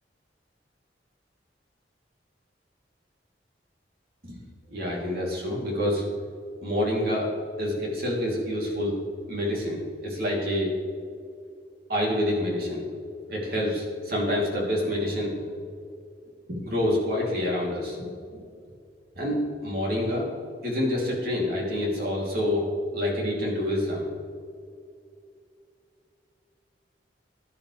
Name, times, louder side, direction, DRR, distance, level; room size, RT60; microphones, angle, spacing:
voice 1, 4.7-6.1 6.6-7.3 7.6-9.0 9.3-10.7 11.9-12.8 13.3-15.4 16.5-18.0 18.3-18.4 19.1-20.3 20.6-22.7 22.9-24.1, left 1 dB, 60° right, -2 dB, 3.3 m, -27 dB
15.5 x 10.5 x 3.4 m, 2.3 s
head